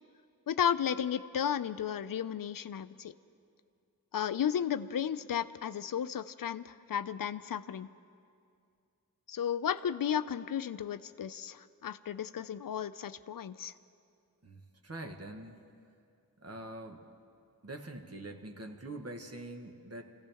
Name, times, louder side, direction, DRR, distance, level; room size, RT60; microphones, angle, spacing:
voice 1, 0.5-3.1 4.1-7.9 9.3-13.7, left 9 dB, 70° left, 13 dB, 0.5 m, -34 dB
voice 2, 14.4-15.6 16.4-17.1 17.6-20.0, right 1 dB, 45° right, 4 dB, 1.3 m, -44 dB
25.5 x 15.5 x 3.5 m, 2.4 s
wide cardioid pair, 60°, 35 cm